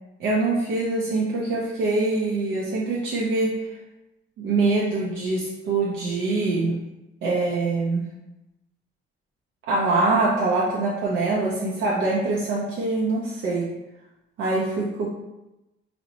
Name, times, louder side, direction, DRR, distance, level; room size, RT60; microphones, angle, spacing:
voice 1, 0.2-3.6 4.4-6.8 7.2-8.0 9.7-13.6 14.4-15.1, right 3 dB, 75° right, -5 dB, 0.5 m, -24 dB
2.8 x 2.0 x 2.8 m, 0.96 s
cardioid pair, 90°, 20 cm